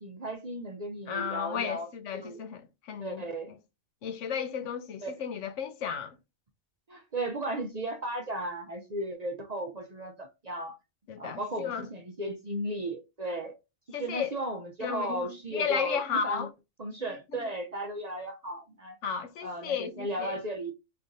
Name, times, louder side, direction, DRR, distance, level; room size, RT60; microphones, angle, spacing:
voice 1, 0.0-1.9 2.2-2.4 3.0-3.5 5.0-5.2 6.9-10.8 11.2-13.5 13.9-16.5 16.8-19.0 19.4-20.7, right 1 dB, 40° right, 0.6 m, -35 dB
voice 2, 1.1-3.2 4.0-6.2 11.1-11.9 13.9-14.4 14.8-16.5 19.0-20.4, left 7 dB, 75° left, 1.0 m, -33 dB
4.9 x 3.2 x 2.6 m
omnidirectional pair, 1.3 m